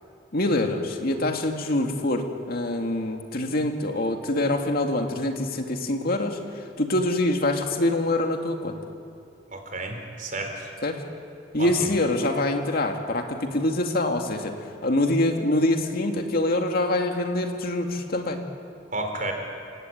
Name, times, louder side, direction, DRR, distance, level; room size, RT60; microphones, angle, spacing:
voice 1, 0.3-6.4 6.8-8.7 10.8-11.0 11.5-14.5 14.8-18.4, left 1 dB, 55° left, 4 dB, 2.3 m, -25 dB
voice 2, 9.5-10.7 11.6-11.9 18.9-19.3, right 2 dB, 45° right, 4 dB, 4.0 m, -32 dB
29.0 x 16.5 x 9.4 m, 2.4 s
head